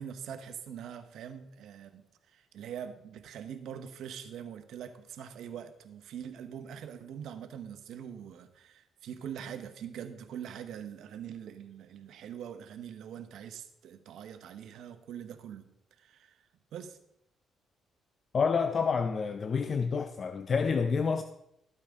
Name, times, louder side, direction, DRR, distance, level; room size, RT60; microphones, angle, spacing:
voice 1, 0.0-15.7 16.0-17.0, right 8 dB, 80° right, 1.0 m, -43 dB
voice 2, 18.3-21.2, left 5 dB, 45° left, 0.6 m, -28 dB
13.5 x 8.9 x 3.7 m
cardioid pair, 90°, 0 cm